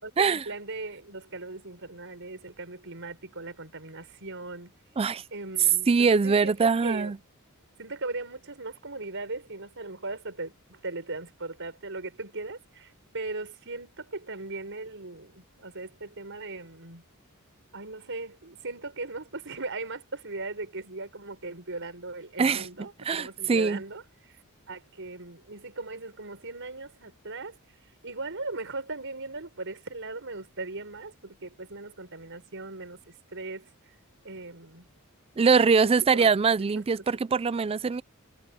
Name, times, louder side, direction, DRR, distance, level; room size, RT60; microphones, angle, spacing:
voice 1, 0.0-4.7 5.3-7.1 7.8-17.0 17.7-24.4 24.7-27.6 28.0-33.7 34.2-34.9 35.6-36.3 36.6-37.0, right 3 dB, 60° right, 6.2 m, -38 dB
voice 2, 5.9-7.2 22.4-22.7 23.0-23.8 35.4-38.0, right 5 dB, 25° right, 0.4 m, -23 dB
head